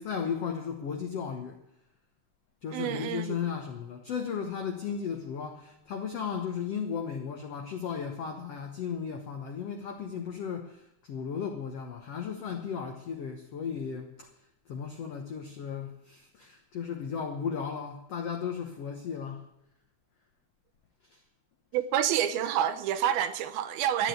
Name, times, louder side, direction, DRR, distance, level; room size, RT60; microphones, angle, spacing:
voice 1, 0.0-1.6 2.6-14.3 14.7-19.5 21.1-21.2 24.0-24.1, left 7 dB, 85° left, 1.3 m, -35 dB
voice 2, 2.7-3.5 21.7-24.1, right 10 dB, 75° right, 2.6 m, -28 dB
13.5 x 9.3 x 8.2 m
omnidirectional pair, 4.7 m